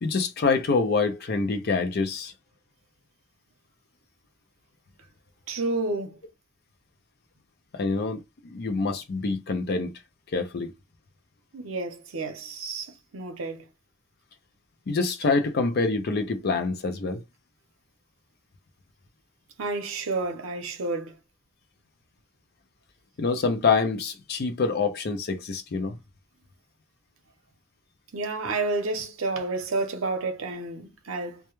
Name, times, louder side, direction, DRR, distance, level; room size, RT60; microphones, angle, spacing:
voice 1, 0.0-2.3 7.7-9.9 10.3-10.7 14.9-17.2 23.2-26.0, left 4 dB, 50° left, 0.4 m, -26 dB
voice 2, 5.5-6.2 11.5-13.6 19.6-21.1 28.1-31.4, right 3 dB, 70° right, 0.7 m, -30 dB
2.2 x 2.1 x 3.0 m
head